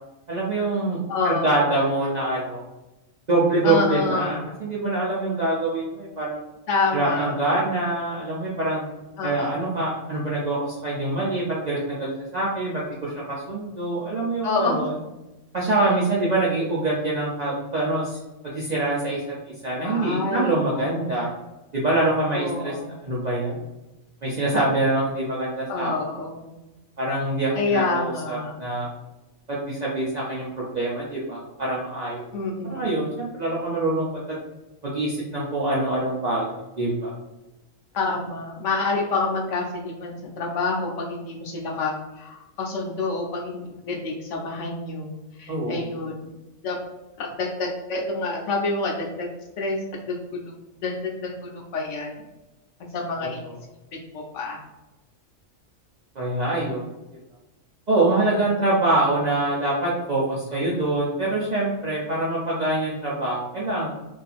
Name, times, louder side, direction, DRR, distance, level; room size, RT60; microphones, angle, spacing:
voice 1, 0.3-2.6 3.3-6.4 6.9-8.8 9.2-14.9 15.5-18.2 18.5-21.3 21.7-22.8 23.0-23.6 24.2-25.9 27.0-28.9 29.5-32.3 32.6-34.4 34.8-37.1 45.5-45.9 53.5-53.6 56.2-56.8 57.9-63.9, right 2 dB, 55° right, -6 dB, 0.5 m, -25 dB
voice 2, 1.1-1.7 3.6-4.4 6.7-7.4 9.2-9.7 14.4-14.8 19.8-21.2 22.3-23.0 25.7-26.5 27.6-28.6 32.3-33.0 37.9-46.2 46.6-46.8 47.2-49.3 49.6-49.8 50.1-50.5 50.8-52.1 52.9-53.4 54.1-54.6 58.0-58.4, left 3 dB, 75° left, 0 dB, 0.9 m, -28 dB
2.7 x 2.4 x 2.4 m, 0.99 s
omnidirectional pair, 1.3 m